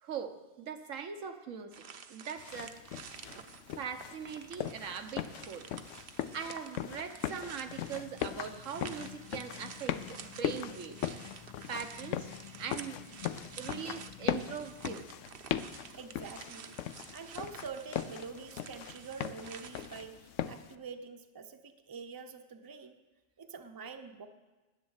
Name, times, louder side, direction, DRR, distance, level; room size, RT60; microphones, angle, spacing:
voice 1, 0.0-2.8 3.8-5.6 6.3-11.0 11.7-12.3 12.6-13.0 13.6-15.1, right 7 dB, 85° right, 6 dB, 1.3 m, -41 dB
sound 1, 1.7-20.0, right 6 dB, 55° right, 0.8 m, -50 dB
sound 2, 2.4-20.7, left 10 dB, 75° left, 0.9 m, -40 dB
sound 3, 7.7-15.1, left 10 dB, 50° left, 0.5 m, -52 dB
voice 2, 15.9-16.8 17.1-23.0 23.4-24.3, right 5 dB, 20° right, 6 dB, 0.6 m, -46 dB
10.5 x 7.4 x 8.9 m, 1.2 s
omnidirectional pair, 1.3 m